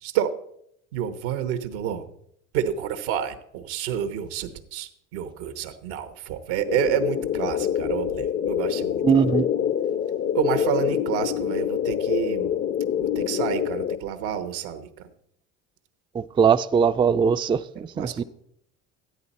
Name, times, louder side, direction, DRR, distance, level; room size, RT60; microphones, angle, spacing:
voice 1, 0.0-0.3 0.9-2.0 2.5-9.0 10.3-12.5 13.0-15.1 18.0-18.2, right 9 dB, 85° right, 1.1 m, -29 dB
sound 1, 6.7-14.0, left 9 dB, 35° left, 0.6 m, -26 dB
voice 2, 9.0-9.5 16.1-18.2, right 6 dB, 15° right, 0.3 m, -21 dB
13.5 x 10.5 x 4.2 m
supercardioid pair, 75°, 34 cm